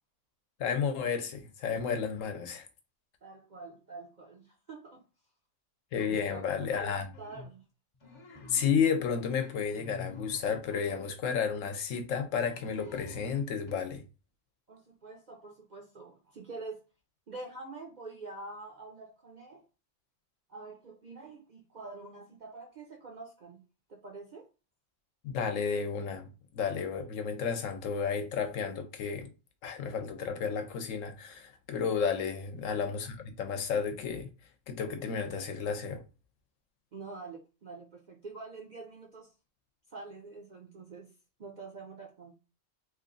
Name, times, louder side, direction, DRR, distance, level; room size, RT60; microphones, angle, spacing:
voice 1, 0.6-2.7 5.9-7.1 8.5-14.0 25.2-26.3 26.5-29.3 29.6-34.3 34.7-36.0, left 6 dB, 85° left, 1.1 m, -32 dB
voice 2, 3.2-5.0 6.1-7.6 14.7-16.8 17.3-19.7 20.5-23.6 23.9-24.5 32.6-32.9 36.9-39.3 39.9-41.1 41.4-42.3, right 3 dB, 50° right, 0.6 m, -46 dB
sound 1, 5.9-6.3 6.8-7.6 7.9-8.9 9.3-11.2 12.3-13.7, left 4 dB, 40° left, 0.4 m, -48 dB
3.0 x 2.5 x 3.8 m
omnidirectional pair, 1.3 m